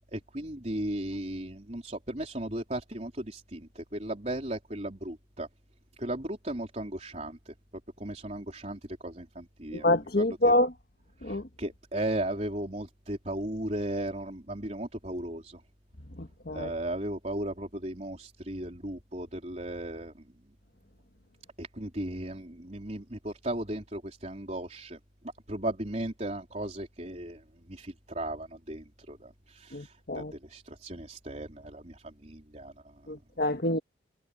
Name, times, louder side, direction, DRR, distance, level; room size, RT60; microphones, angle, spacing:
voice 1, 0.1-5.5 6.0-7.5 8.0-9.9 10.2-10.6 11.2-15.6 16.5-20.1 21.6-25.0 25.5-32.9, right 1 dB, 35° right, 4.1 m, -36 dB
voice 2, 9.7-10.7 11.2-11.4 16.2-16.7 29.7-30.3 33.1-33.8, left 1 dB, 55° left, 1.7 m, -27 dB
head